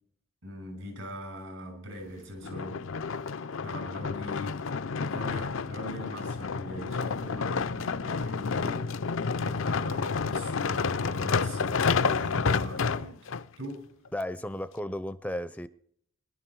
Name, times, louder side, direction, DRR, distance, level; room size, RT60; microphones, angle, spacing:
voice 1, 0.4-3.0 3.6-9.0 9.4-13.3 13.6-13.9, equal, 80° right, 6.5 m, -41 dB
sound 1, 2.4-13.4 14.1-14.2, left 5 dB, 80° left, 0.6 m, -30 dB
voice 2, 14.1-15.7, left 1 dB, 5° left, 0.5 m, -34 dB
21.5 x 11.5 x 4.7 m
head